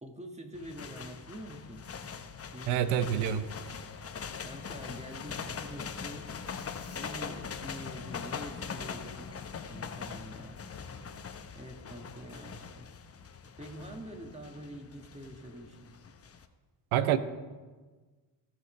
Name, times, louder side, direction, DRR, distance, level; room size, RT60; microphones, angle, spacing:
voice 1, 0.0-1.8 2.5-3.1 4.4-6.3 6.9-10.6 11.5-12.9 13.6-15.9, equal, 15° right, 4 dB, 1.6 m, -46 dB
sound 1, 0.5-16.5, left 6 dB, 30° left, 0.7 m, -42 dB
voice 2, 2.7-3.4 16.9-17.2, right 10 dB, 80° right, 13 dB, 0.8 m, -27 dB
16.5 x 6.0 x 3.2 m, 1.4 s
supercardioid pair, 65°, 49 cm